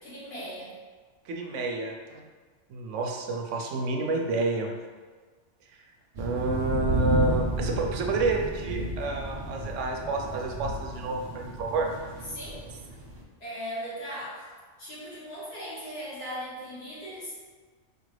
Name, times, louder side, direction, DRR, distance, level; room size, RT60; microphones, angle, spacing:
voice 1, 0.0-0.7 12.3-12.6 13.4-14.5 14.8-17.3, equal, 60° left, -10 dB, 1.7 m, -38 dB
voice 2, 1.3-2.2 2.7-4.7 6.2-11.9, right 3 dB, 85° right, 2 dB, 0.9 m, -29 dB
sound 1, 6.1-13.2, right 1 dB, 50° right, 0.7 m, -32 dB
4.4 x 2.5 x 3.2 m, 1.5 s
omnidirectional pair, 1.2 m